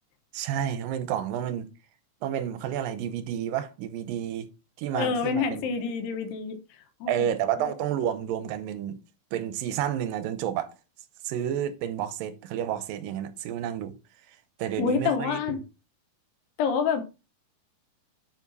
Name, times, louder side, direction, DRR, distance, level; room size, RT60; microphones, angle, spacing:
voice 1, 0.3-1.7 2.2-4.5 4.8-5.7 7.1-9.0 9.3-10.7 11.2-14.0 14.6-15.4, right 10 dB, 75° right, 2.4 m, -30 dB
voice 2, 4.9-6.6 7.0-7.3 7.6-7.7 14.8-15.6 16.6-17.0, left 6 dB, 75° left, 2.8 m, -27 dB
7.6 x 4.9 x 4.0 m
omnidirectional pair, 4.2 m